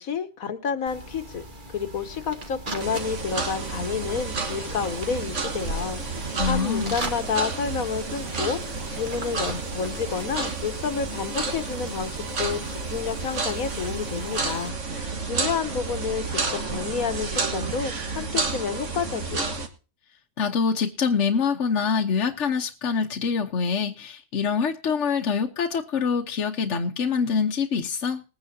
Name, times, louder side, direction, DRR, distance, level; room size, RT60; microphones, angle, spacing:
voice 1, 0.0-1.5 1.7-19.6, left 6 dB, 85° left, 1.7 m, -30 dB
sound 1, 0.9-14.7, right 1 dB, 35° right, 1.8 m, -40 dB
sound 2, 2.8-19.7, right 4 dB, 60° right, 2.0 m, -31 dB
voice 2, 6.4-7.0 20.4-28.2, left 5 dB, 60° left, 1.3 m, -25 dB
20.5 x 9.7 x 2.8 m
omnidirectional pair, 1.4 m